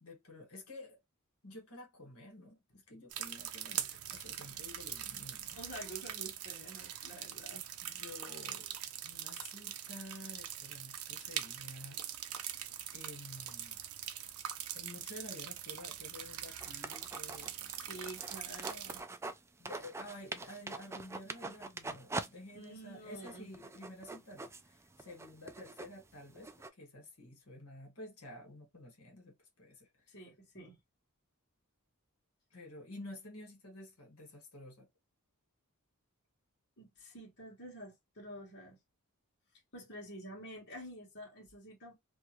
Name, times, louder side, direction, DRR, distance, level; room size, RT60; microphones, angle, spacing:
voice 1, 0.0-1.0 1.4-5.6 7.1-7.2 7.8-8.7 9.0-12.0 12.9-13.8 14.7-17.8 19.6-30.1 32.5-34.9, left 1 dB, 75° left, 1.6 m, -51 dB
sound 1, 3.1-19.0, right 10 dB, 70° right, 0.5 m, -43 dB
voice 2, 5.5-7.6 17.8-19.0 22.5-23.5 30.1-30.8 36.8-38.8 39.7-41.9, equal, 50° left, 1.3 m, -49 dB
sound 2, 16.6-19.4 19.7-22.3 22.6-22.7 23.1-26.7, right 3 dB, 10° right, 0.3 m, -43 dB
2.8 x 2.4 x 2.9 m
head